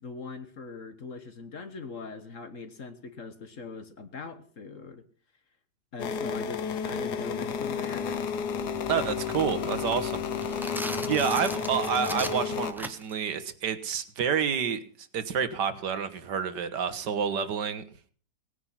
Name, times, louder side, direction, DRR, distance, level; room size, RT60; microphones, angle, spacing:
voice 1, 0.0-5.0 5.9-8.3, left 4 dB, 50° left, 9 dB, 1.5 m, -41 dB
sound 1, 6.0-12.7, left 7 dB, 70° left, 1.5 m, -32 dB
sound 2, 6.2-12.5, right 2 dB, 30° left, 3.5 m, -46 dB
voice 2, 8.9-10.8 11.1-14.8 15.1-17.8, right 7 dB, 75° right, 11 dB, 1.8 m, -29 dB
sound 3, 10.3-13.2, equal, ahead, 0.6 m, -37 dB
18.5 x 9.8 x 5.7 m, 0.43 s
omnidirectional pair, 1.9 m